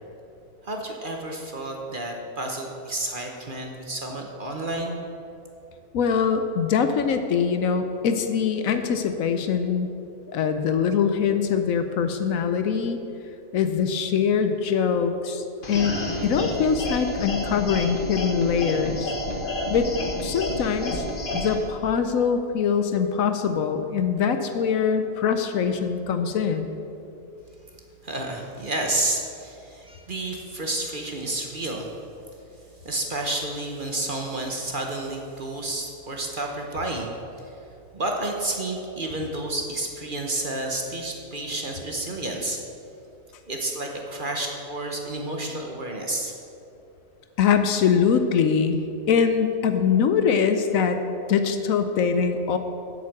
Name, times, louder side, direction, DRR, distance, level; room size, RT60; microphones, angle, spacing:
voice 1, 0.6-5.0 28.0-31.9 32.8-37.1 37.5-37.6 37.9-42.6 43.5-46.3, right 2 dB, 40° right, 1 dB, 0.9 m, -30 dB
voice 2, 5.9-9.9 10.3-13.0 13.5-19.1 19.7-19.9 20.2-21.0 21.3-26.7 47.4-48.8 49.1-51.0 51.3-52.6, left 6 dB, 70° left, 8 dB, 1.0 m, -23 dB
sound 1, 15.6-21.6, left 1 dB, 35° left, 1.5 m, -30 dB
8.2 x 7.4 x 7.2 m, 2.7 s
omnidirectional pair, 1.6 m